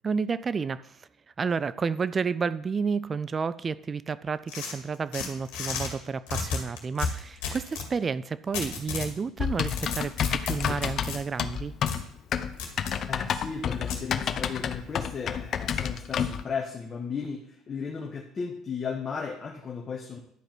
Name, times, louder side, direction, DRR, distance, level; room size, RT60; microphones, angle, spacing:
voice 1, 0.0-1.0 1.4-11.7, right 5 dB, 35° right, 18 dB, 0.5 m, -31 dB
sound 1, 4.5-5.9 6.3-7.9 8.5-9.1 9.5-11.2 11.9-12.0 12.6-13.0 13.9-14.0, left 6 dB, 80° left, 2.1 m, -33 dB
Typing, 9.4-16.4, left 8 dB, 50° left, 0.7 m, -30 dB
voice 2, 13.1-20.2, left 5 dB, 35° left, 0 dB, 1.5 m, -35 dB
11.0 x 4.9 x 6.1 m, 0.71 s
supercardioid pair, 80°, 0 cm